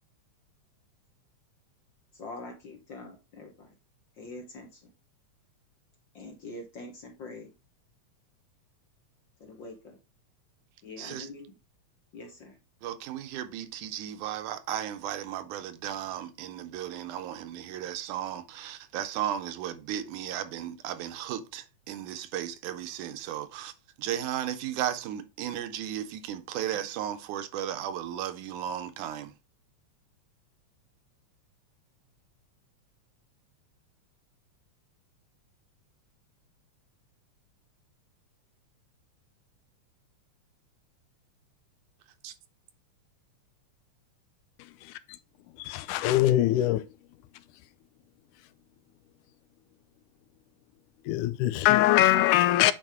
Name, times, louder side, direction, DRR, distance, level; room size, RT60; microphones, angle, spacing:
voice 1, 2.2-3.7 4.2-4.8 6.1-7.5 9.4-10.0 10.8-11.6 12.1-12.5, left 2 dB, 55° left, 1.4 m, -44 dB
voice 2, 11.0-11.3 12.8-23.7 24.0-29.3 42.2-42.3, right 11 dB, 80° right, 2.2 m, -35 dB
voice 3, 45.6-46.8 51.1-52.7, left 14 dB, 85° left, 2.1 m, -22 dB
9.1 x 4.7 x 3.6 m
omnidirectional pair, 3.5 m